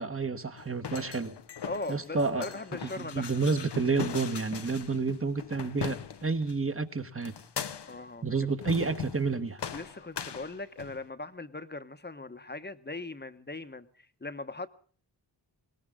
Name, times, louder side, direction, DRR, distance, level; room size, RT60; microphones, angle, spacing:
voice 1, 0.0-1.3 1.9-2.4 2.8-7.3 8.2-9.6, right 4 dB, 30° right, 8 dB, 1.4 m, -30 dB
sound 1, 0.6-6.6 7.3-8.1 8.6-9.3 9.6-11.1, left 7 dB, 65° left, 0.9 m, -39 dB
voice 2, 1.7-3.4 7.9-8.2 9.7-13.9 14.2-14.7, left 2 dB, 25° left, 10 dB, 1.1 m, -39 dB
20.0 x 18.5 x 3.7 m, 0.43 s
wide cardioid pair, 70°, 44 cm